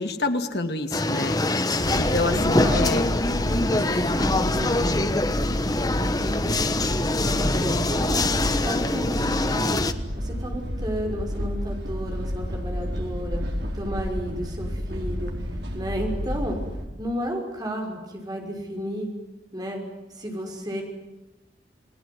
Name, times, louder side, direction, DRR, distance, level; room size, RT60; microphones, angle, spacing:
voice 1, 0.0-1.4 2.0-3.0, left 2 dB, 65° left, 6 dB, 2.5 m, -27 dB
sound 1, 0.9-9.9, left 2 dB, 20° left, 1.2 m, -24 dB
sound 2, 1.8-16.9, equal, 70° right, 4.3 m, -30 dB
voice 2, 2.3-3.1 3.7-5.3 5.7-6.4 7.2-9.7 10.2-13.4 13.7-15.3 15.7-16.6 17.0-19.1 19.5-19.8 20.1-20.8, equal, 20° right, 1 dB, 5.9 m, -32 dB
30.0 x 19.5 x 9.6 m, 0.98 s
head